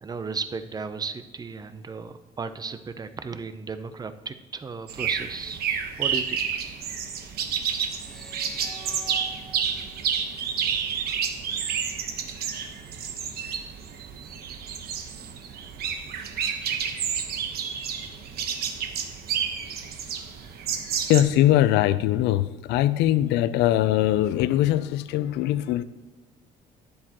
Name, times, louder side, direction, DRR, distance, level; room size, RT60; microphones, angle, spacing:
voice 1, 0.0-5.7 6.0-6.4, right 5 dB, 25° right, 11 dB, 0.6 m, -35 dB
sound 1, 4.9-21.2, right 7 dB, 65° right, 1.2 m, -30 dB
sound 2, 7.9-11.2, right 1 dB, ahead, 0.9 m, -47 dB
voice 2, 21.1-25.8, left 13 dB, 85° left, 15 dB, 0.5 m, -21 dB
12.0 x 9.8 x 3.0 m, 1.2 s
cardioid pair, 110°, 17 cm